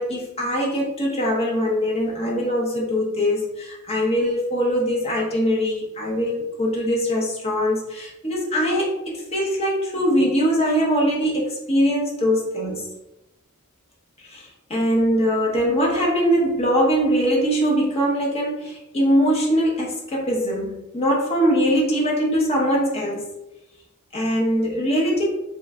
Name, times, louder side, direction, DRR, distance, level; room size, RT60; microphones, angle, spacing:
voice 1, 0.0-12.9 14.3-23.2 24.1-25.2, equal, 30° left, -3 dB, 0.7 m, -22 dB
3.1 x 2.2 x 3.4 m, 0.94 s
head